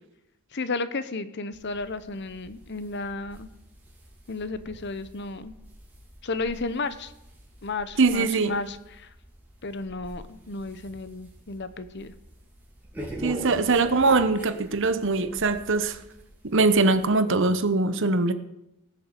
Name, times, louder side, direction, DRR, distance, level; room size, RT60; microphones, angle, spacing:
voice 1, 0.5-3.5 4.3-5.5 6.2-7.1 7.6-9.1 9.6-12.1, left 3 dB, 50° left, 13 dB, 0.9 m, -33 dB
sound 1, 1.5-17.1, right 1 dB, 5° right, 3.3 m, -45 dB
voice 2, 8.0-8.6 13.2-16.0 16.4-18.3, right 3 dB, 55° right, 11 dB, 1.1 m, -22 dB
18.5 x 6.9 x 8.2 m, 0.88 s
head